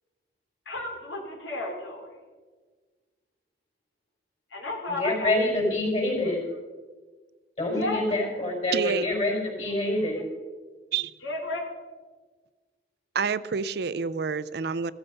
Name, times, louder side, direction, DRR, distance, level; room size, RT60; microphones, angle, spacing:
voice 1, 0.6-2.1 4.5-5.3 7.7-8.0 11.2-11.6, left 2 dB, 90° left, 0 dB, 3.4 m, -33 dB
voice 2, 4.9-6.4 7.6-10.3, left 1 dB, 35° left, -1 dB, 5.1 m, -26 dB
voice 3, 8.7-9.0 10.9-11.1 13.1-14.9, right 6 dB, 60° right, 15 dB, 0.5 m, -28 dB
15.5 x 13.5 x 5.3 m, 1.4 s
head